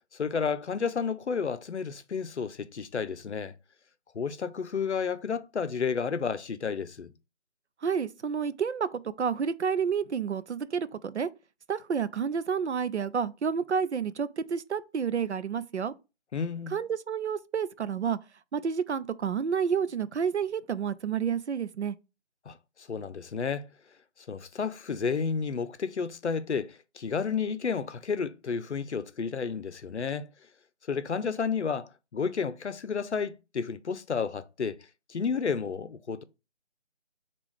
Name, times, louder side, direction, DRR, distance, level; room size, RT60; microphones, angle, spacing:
voice 1, 0.1-3.5 4.1-7.1 16.3-16.7 22.5-22.6 22.9-23.7 24.3-30.3 30.9-34.8 35.1-36.2, left 6 dB, 75° left, 0.6 m, -31 dB
voice 2, 7.8-11.3 11.7-15.9 16.7-18.2 18.5-22.0, right 6 dB, 75° right, 0.5 m, -30 dB
3.7 x 2.4 x 4.6 m
figure-of-eight pair, 175°, 35 cm